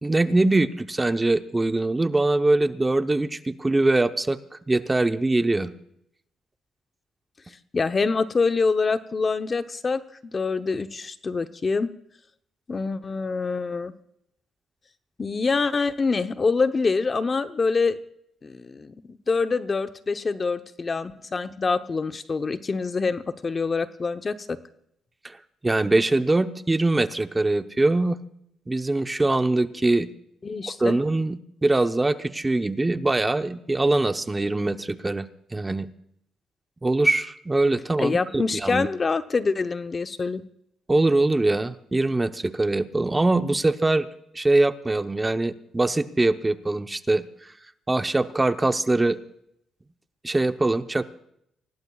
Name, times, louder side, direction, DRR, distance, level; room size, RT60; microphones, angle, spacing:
voice 1, 0.0-4.4 4.7-5.7 25.2-25.4 25.6-28.2 28.7-30.1 30.8-35.3 35.5-35.9 36.8-38.9 40.9-44.1 44.3-47.5 47.9-49.2 50.2-51.0, right 2 dB, 15° right, 9 dB, 0.8 m, -22 dB
voice 2, 7.7-11.9 12.7-13.9 15.2-18.0 18.4-24.6 30.4-31.0 38.0-40.4, left 4 dB, 35° left, 10 dB, 0.8 m, -25 dB
25.0 x 17.5 x 2.4 m, 0.73 s
cardioid pair, 90°, 0 cm